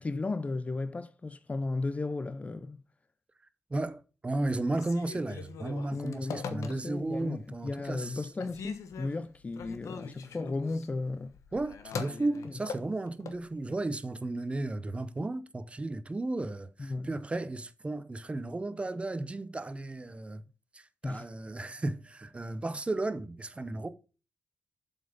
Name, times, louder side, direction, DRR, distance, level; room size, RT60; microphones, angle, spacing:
voice 1, 0.0-2.8 5.9-7.4 7.6-11.3 16.8-17.1 21.0-21.3, left 3 dB, 25° left, 0.4 m, -35 dB
voice 2, 3.7-8.3 11.5-20.4 20.7-23.9, right 2 dB, 25° right, 0.7 m, -34 dB
Telephone, 4.7-7.1 7.6-8.1 8.4-13.4, left 6 dB, 85° left, 1.1 m, -42 dB
7.4 x 5.5 x 5.2 m
cardioid pair, 95°, 5 cm